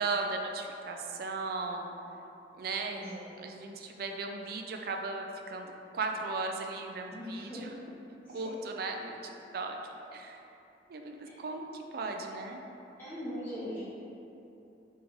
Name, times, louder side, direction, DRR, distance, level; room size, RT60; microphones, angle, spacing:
voice 1, 0.0-1.9 2.6-3.1 3.4-7.7 8.3-9.8 10.1-10.4 10.9-12.6, right 3 dB, 55° right, 3 dB, 0.3 m, -36 dB
voice 2, 2.9-3.2 7.1-7.7 8.2-8.5 13.0-13.8, equal, 15° left, -13 dB, 0.7 m, -40 dB
3.6 x 3.0 x 3.9 m, 2.9 s
head